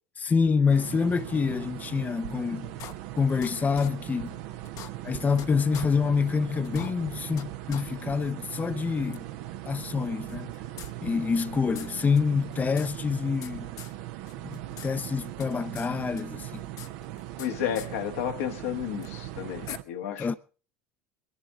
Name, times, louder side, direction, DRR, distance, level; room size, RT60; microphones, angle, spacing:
voice 1, 0.2-2.7 3.2-4.4 5.0-9.2 9.7-10.5 11.0-13.7 14.5-16.6 20.2-20.4, left 5 dB, 25° left, 0.6 m, -27 dB
sound 1, 0.7-19.8, right 14 dB, 70° right, 0.8 m, -39 dB
sound 2, 2.8-3.5 3.8-3.9 4.3-4.4 4.6-5.5 5.7-5.9 6.3-6.4 6.6-7.4 7.7-7.8 8.2-8.3 9.1-9.2 10.3-11.5 11.7-11.9 12.2-12.3 12.5-13.5 13.8-13.9 14.3-14.9 15.1-15.9 16.2-17.5 17.7-17.9 19.0-19.1 19.7-19.8, left 10 dB, 55° left, 0.9 m, -42 dB
voice 2, 17.4-20.4, left 10 dB, 85° left, 1.5 m, -32 dB
22.5 x 10.5 x 3.8 m
hypercardioid pair, 85°, 7 cm